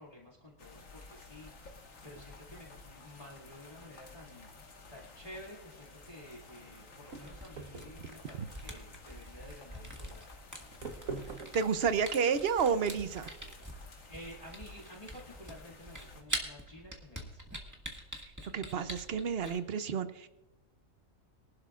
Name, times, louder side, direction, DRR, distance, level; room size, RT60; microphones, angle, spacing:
voice 1, 0.0-4.5 4.9-10.3 14.1-17.4, left 1 dB, 25° left, -4 dB, 2.4 m, -51 dB
sound 1, 0.6-16.2, left 3 dB, 75° left, 1.8 m, -54 dB
sound 2, 2.1-13.5, right 4 dB, 80° right, 1.5 m, -49 dB
Camera, 7.1-19.6, right 1 dB, 15° right, 1.7 m, -44 dB
voice 2, 11.5-13.3 18.5-20.3, right 6 dB, 55° right, 12 dB, 0.8 m, -30 dB
23.0 x 11.5 x 2.4 m, 1.0 s
omnidirectional pair, 1.4 m